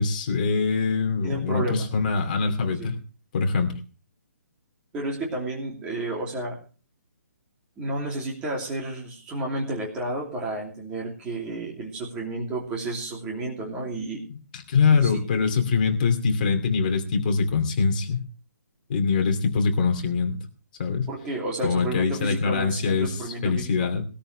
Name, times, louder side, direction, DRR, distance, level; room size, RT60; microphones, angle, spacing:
voice 1, 0.0-3.0 3.3-3.8 14.5-18.3 18.9-20.4 20.8-21.1 21.6-23.1 23.4-24.1, left 5 dB, 30° left, 4 dB, 2.6 m, -23 dB
voice 2, 1.2-1.9 2.7-2.9 4.9-6.6 7.8-14.2 14.9-15.2 21.1-23.7, right 2 dB, 10° right, -2 dB, 2.8 m, -31 dB
20.5 x 13.0 x 3.3 m, 0.37 s
hypercardioid pair, 175°, 10 cm